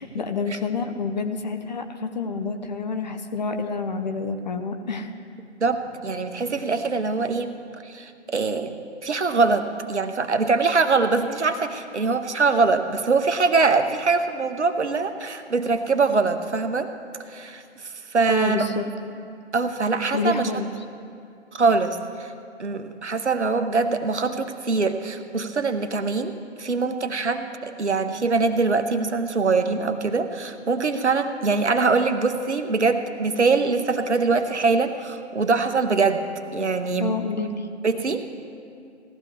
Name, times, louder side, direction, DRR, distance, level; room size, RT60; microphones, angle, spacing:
voice 1, 0.0-5.1 18.3-18.8 20.1-20.7 37.0-37.7, left 4 dB, 40° left, 6 dB, 0.7 m, -28 dB
voice 2, 5.6-7.6 7.8-16.9 17.3-17.6 18.1-18.7 19.5-20.5 21.5-22.3 22.6-36.2 36.5-37.1 37.8-38.2, right 4 dB, 70° right, 8 dB, 1.0 m, -23 dB
17.5 x 13.0 x 3.2 m, 2.4 s
figure-of-eight pair, 140°, 36 cm